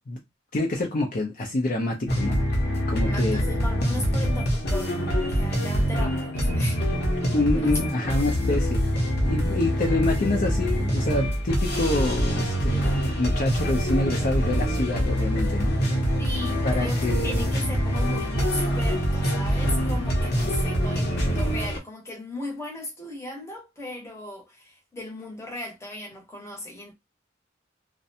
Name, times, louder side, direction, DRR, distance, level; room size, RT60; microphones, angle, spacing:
voice 1, 0.5-2.4 2.9-3.4 7.3-8.8 9.3-15.8 16.6-17.5, left 2 dB, 45° left, 0.5 m, -27 dB
sound 1, 2.1-21.8, equal, 60° left, 0.9 m, -25 dB
voice 2, 3.0-4.9 5.3-6.8 7.6-8.1 16.2-26.9, left 1 dB, 15° left, 0.9 m, -37 dB
2.5 x 2.1 x 2.7 m
head